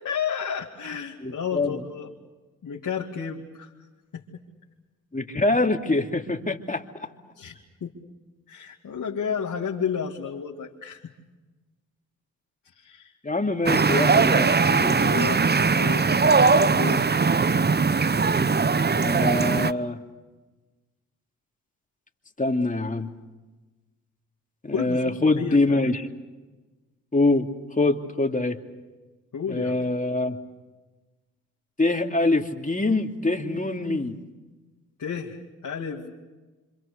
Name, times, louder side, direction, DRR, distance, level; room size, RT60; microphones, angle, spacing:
voice 1, 0.0-2.1 2.6-3.7 4.1-4.4 7.4-7.9 8.5-11.0 12.8-13.1 14.9-15.4 15.7-16.2 16.7-17.0 24.7-25.8 29.3-29.7 35.0-36.1, left 7 dB, 60° left, -2 dB, 2.6 m, -32 dB
voice 2, 1.2-1.8 5.1-6.8 13.2-15.0 16.0-16.1 19.0-20.0 22.4-23.1 24.6-26.1 27.1-27.5 27.8-28.6 29.5-30.4 31.8-34.2, left 2 dB, 20° left, 4 dB, 2.7 m, -24 dB
sound 1, 13.7-19.7, right 4 dB, 25° right, 0.9 m, -20 dB
27.0 x 26.0 x 6.8 m, 1.2 s
supercardioid pair, 45°, 36 cm